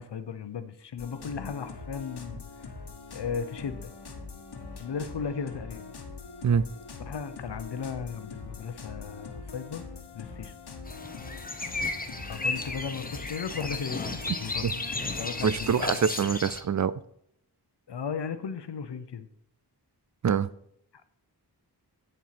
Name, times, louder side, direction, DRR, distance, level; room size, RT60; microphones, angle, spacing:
voice 1, 0.0-2.7 3.1-3.9 4.8-5.9 7.0-9.8 10.1-10.5 12.2-14.7 15.0-16.0 17.9-19.3, left 6 dB, 85° left, 0.8 m, -36 dB
sound 1, 1.0-15.9, left 4 dB, 70° left, 1.3 m, -43 dB
sound 2, 10.9-16.6, left 2 dB, 20° left, 0.9 m, -34 dB
voice 2, 15.4-17.0 20.2-20.5, right 7 dB, 45° right, 0.4 m, -25 dB
10.0 x 4.5 x 5.9 m
wide cardioid pair, 80°, 40 cm